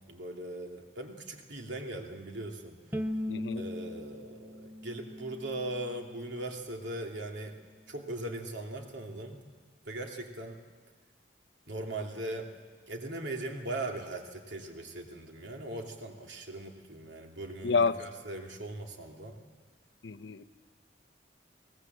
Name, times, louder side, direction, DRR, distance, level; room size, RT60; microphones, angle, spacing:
voice 1, 0.1-2.8 3.5-7.6 7.9-9.4 9.9-10.6 11.7-12.5 12.9-19.4, right 1 dB, 70° right, 2 dB, 2.6 m, -39 dB
Bowed string instrument, 2.9-6.1, left 1 dB, 10° right, 0.7 m, -38 dB
voice 2, 3.3-3.6 17.6-18.0 20.0-20.4, left 4 dB, 75° left, 10 dB, 0.7 m, -28 dB
23.0 x 18.5 x 7.8 m, 1.5 s
head